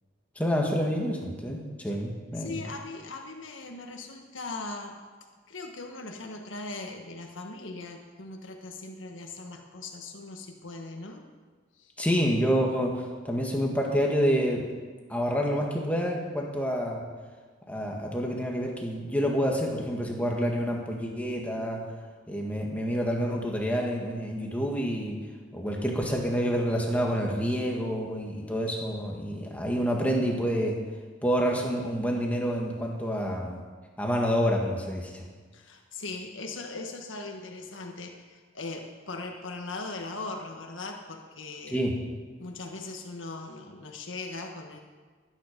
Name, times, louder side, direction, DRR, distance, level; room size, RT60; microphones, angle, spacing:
voice 1, 0.4-2.5 12.0-14.6 15.1-17.0 17.7-21.8 22.3-25.2 25.5-30.8 31.2-33.6 34.0-35.3 41.7-42.0, equal, 10° left, 0 dB, 1.9 m, -28 dB
voice 2, 2.3-5.0 5.5-11.3 11.7-11.9 35.5-41.8 42.4-44.8, left 3 dB, 85° left, 3 dB, 1.5 m, -39 dB
21.0 x 9.8 x 5.3 m, 1.5 s
head